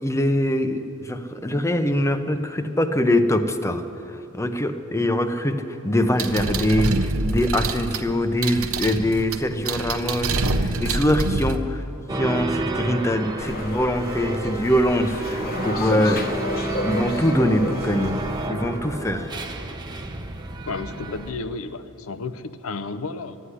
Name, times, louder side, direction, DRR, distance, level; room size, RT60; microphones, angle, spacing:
voice 1, 0.0-11.8 12.1-16.3 16.8-18.2 18.5-19.3, left 1 dB, 15° left, 8 dB, 0.7 m, -23 dB
sound 1, 6.2-11.6, right 2 dB, 70° right, 0.8 m, -26 dB
sound 2, 12.1-21.3, right 2 dB, 20° right, 0.9 m, -31 dB
sound 3, 13.4-18.5, left 2 dB, 45° left, 1.1 m, -32 dB
voice 2, 20.7-23.4, left 3 dB, 75° left, 11 dB, 0.7 m, -32 dB
13.0 x 9.8 x 9.9 m, 2.9 s
head